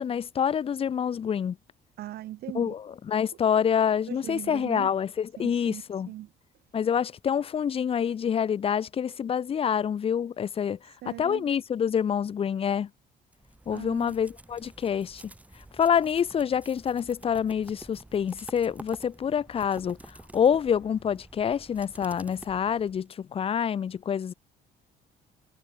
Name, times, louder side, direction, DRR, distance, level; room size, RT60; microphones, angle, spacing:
voice 1, 0.0-1.6 2.5-6.1 6.7-10.8 11.1-12.9 13.7-15.2 15.8-20.0 20.3-24.3, left 8 dB, 35° left, 0.6 m, -27 dB
voice 2, 2.0-2.7 4.1-4.9 5.4-6.3 11.0-11.5 13.7-14.1, right 14 dB, 70° right, 2.8 m, -40 dB
sound 1, 13.3-23.1, right 1 dB, 10° right, 2.5 m, -49 dB
cardioid pair, 110°, 17 cm